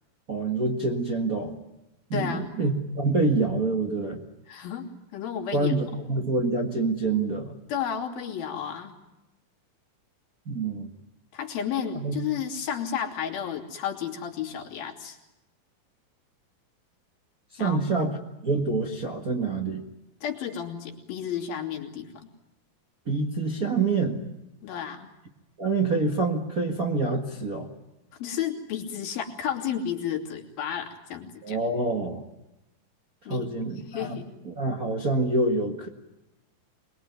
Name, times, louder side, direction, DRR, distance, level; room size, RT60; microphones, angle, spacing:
voice 1, 0.3-1.5 2.1-4.2 5.5-7.6 10.5-10.9 11.9-12.2 17.5-18.1 18.4-19.8 23.1-24.2 25.6-27.7 31.4-32.2 33.3-34.2 34.5-35.9, right 3 dB, 35° right, 1 dB, 1.6 m, -26 dB
voice 2, 2.1-2.5 4.5-5.7 7.7-8.9 11.3-15.2 17.6-18.0 20.2-22.3 24.6-25.1 28.2-31.6 33.3-33.5 33.9-34.3, left 8 dB, 75° left, 2 dB, 4.6 m, -32 dB
25.5 x 21.0 x 9.5 m, 0.94 s
omnidirectional pair, 4.3 m